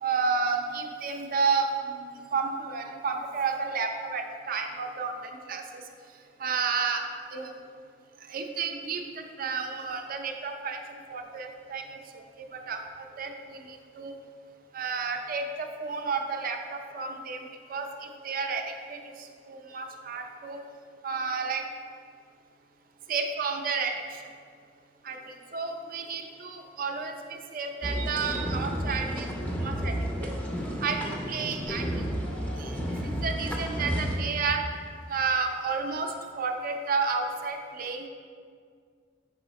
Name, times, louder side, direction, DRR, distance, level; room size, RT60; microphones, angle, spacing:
voice 1, 0.0-5.1 5.5-5.6 6.4-7.0 7.3-7.5 8.3-10.8 11.1-11.8 12.4-12.8 13.2-14.1 14.7-17.4 17.7-18.6 18.9-19.0 19.5-20.6 21.0-21.6 23.1-23.9 25.0-29.9 30.2-30.3 30.8-32.1 32.6-32.8 33.0-34.6 35.1-38.1, right 5 dB, 45° right, 4 dB, 0.5 m, -31 dB
sound 1, 27.8-34.2, equal, 10° left, 0.6 m, -31 dB
5.5 x 4.8 x 4.0 m, 2.1 s
head